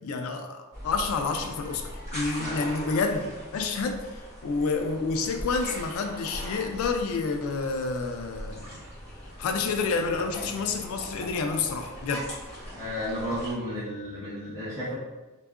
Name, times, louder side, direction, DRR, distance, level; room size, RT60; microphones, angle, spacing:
voice 1, 0.0-8.8 9.4-12.3, left 4 dB, 80° left, 4 dB, 0.3 m, -29 dB
sound 1, 0.7-13.5, equal, 30° left, 1.3 m, -40 dB
voice 2, 12.6-14.9, equal, 15° right, -10 dB, 1.0 m, -33 dB
2.6 x 2.3 x 2.4 m, 1.2 s
head